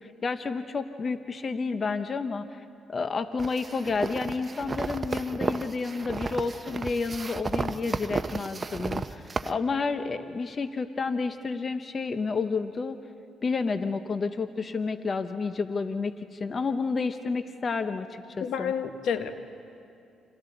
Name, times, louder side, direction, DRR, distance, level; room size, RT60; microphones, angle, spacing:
voice 1, 0.0-13.0 13.4-18.7, left 4 dB, 40° left, 9 dB, 0.8 m, -30 dB
sound 1, 3.4-9.5, right 4 dB, 30° right, 0.7 m, -33 dB
voice 2, 18.4-19.3, left 7 dB, 75° left, 8 dB, 1.1 m, -29 dB
29.0 x 27.0 x 3.9 m, 2.5 s
cardioid pair, 90°, 0 cm